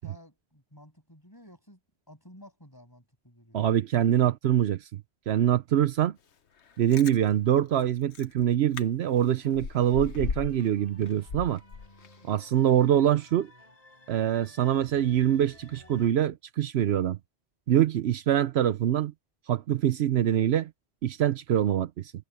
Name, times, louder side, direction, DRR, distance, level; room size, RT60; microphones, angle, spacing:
voice 1, 0.0-1.8 2.1-3.6, left 1 dB, 20° left, 6.6 m, -53 dB
voice 2, 3.5-5.0 5.3-6.2 6.8-11.6 12.2-13.5 14.1-17.2 17.7-19.1 19.5-20.7 21.0-22.1, right 10 dB, 75° right, 0.9 m, -24 dB
Chewing mastication, 6.7-7.2 7.8-7.9 8.1-8.3 8.7-8.8 9.2-10.7 11.0-12.3 12.6-12.7, left 5 dB, 90° left, 1.4 m, -36 dB
sound 1, 9.9-16.1, left 1 dB, 35° left, 5.5 m, -55 dB
omnidirectional pair, 1.1 m